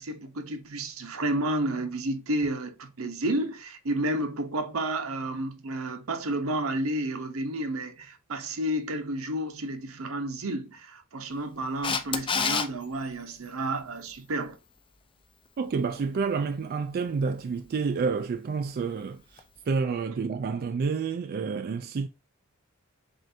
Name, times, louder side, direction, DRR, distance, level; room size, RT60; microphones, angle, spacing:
voice 1, 0.0-14.6, right 1 dB, 75° right, 0.9 m, -31 dB
Camera, 11.8-12.7 19.4-19.5, left 5 dB, 25° left, 0.5 m, -26 dB
voice 2, 15.6-22.1, right 5 dB, 45° right, 0.3 m, -29 dB
7.6 x 2.6 x 2.7 m
head